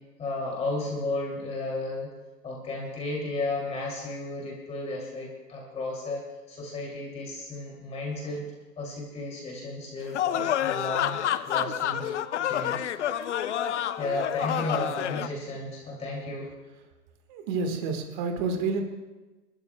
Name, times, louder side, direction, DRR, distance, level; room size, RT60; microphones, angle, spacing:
voice 1, 0.2-2.1 2.4-6.2 6.5-8.4 8.8-11.2 11.5-12.0 12.4-12.9 14.0-16.5, left 2 dB, 15° left, -2 dB, 2.6 m, -33 dB
sound 1, 10.1-15.3, left 10 dB, 45° left, 0.5 m, -28 dB
voice 2, 17.3-18.8, right 4 dB, 30° right, 4 dB, 1.5 m, -29 dB
29.5 x 12.5 x 2.2 m, 1.2 s
hypercardioid pair, 150°, 49 cm